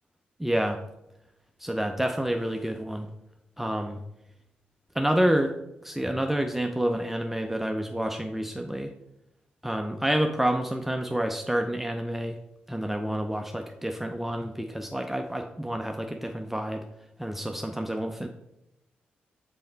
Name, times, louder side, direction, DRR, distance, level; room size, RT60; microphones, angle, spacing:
voice 1, 0.4-0.8 1.6-3.1 3.6-4.0 5.0-5.5 5.8-8.9 9.6-12.4 12.7-16.8 17.2-18.3, right 1 dB, 5° right, 4 dB, 0.5 m, -28 dB
5.6 x 5.0 x 3.9 m, 0.88 s
supercardioid pair, 50°, 4 cm